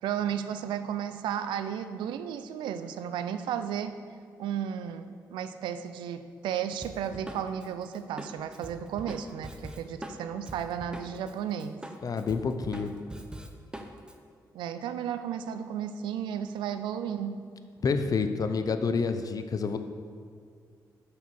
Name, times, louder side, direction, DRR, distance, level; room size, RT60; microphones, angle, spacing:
voice 1, 0.0-3.9 4.4-11.8 14.5-17.4, right 9 dB, 85° right, 10 dB, 0.4 m, -34 dB
Drum kit, 6.8-11.3 11.6-14.1, right 1 dB, 10° right, 0.7 m, -42 dB
voice 2, 12.0-12.9 17.8-19.8, left 5 dB, 50° left, 9 dB, 0.5 m, -28 dB
5.6 x 4.6 x 6.1 m, 2.1 s
supercardioid pair, 55°, 8 cm